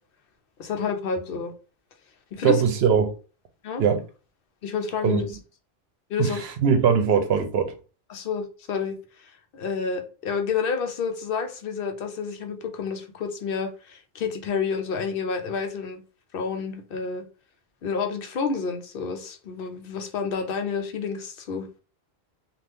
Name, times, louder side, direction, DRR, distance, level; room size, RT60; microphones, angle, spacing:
voice 1, 0.6-1.5 2.3-2.6 3.6-3.8 4.6-5.3 6.1-6.4 8.1-16.0 16.3-17.2 17.8-21.7, left 5 dB, 65° left, 0.8 m, -29 dB
voice 2, 2.4-3.1 3.8-4.0 5.0-5.2 6.2-7.7, right 6 dB, 85° right, 0.9 m, -21 dB
2.6 x 2.5 x 3.3 m
omnidirectional pair, 1.0 m